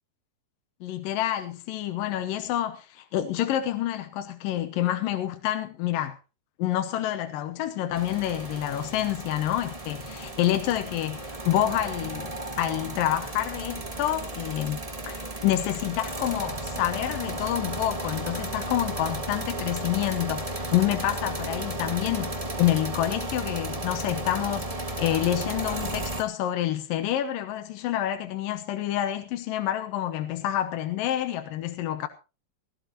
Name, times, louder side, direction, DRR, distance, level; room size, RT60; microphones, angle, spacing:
voice 1, 0.8-6.2 6.6-12.3 12.6-32.1, left 12 dB, 90° left, 2.6 m, -28 dB
sound 1, 7.9-26.2, right 1 dB, 50° right, 0.4 m, -34 dB
17.0 x 16.5 x 2.9 m
omnidirectional pair, 3.9 m